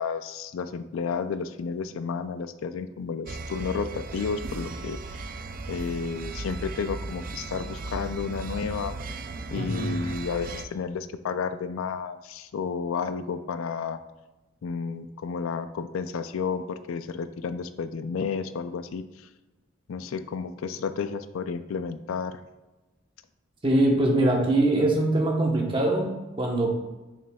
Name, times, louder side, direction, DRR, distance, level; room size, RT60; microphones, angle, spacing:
voice 1, 0.0-5.3 5.7-8.9 9.5-14.0 14.6-19.0 19.9-22.4, left 5 dB, 85° left, 12 dB, 0.4 m, -32 dB
sound 1, 3.3-10.7, right 3 dB, 45° right, 0.3 m, -36 dB
voice 2, 9.5-10.0 23.6-26.7, right 1 dB, 25° right, 0 dB, 1.0 m, -23 dB
6.8 x 6.2 x 2.3 m, 1.1 s
head